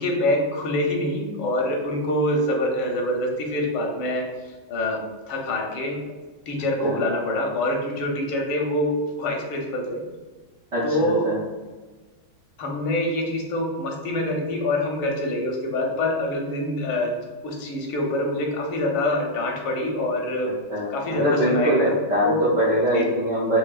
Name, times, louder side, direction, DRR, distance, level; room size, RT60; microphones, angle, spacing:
voice 1, 0.0-5.0 5.3-6.0 6.5-10.0 10.8-11.3 12.6-17.1 17.4-20.5 20.9-21.9 22.2-22.4 22.9-23.1, left 1 dB, 85° left, 0 dB, 1.6 m, -25 dB
voice 2, 10.7-11.4 20.7-23.6, equal, 70° right, -7 dB, 0.7 m, -23 dB
4.7 x 2.6 x 2.3 m, 1.3 s
omnidirectional pair, 2.2 m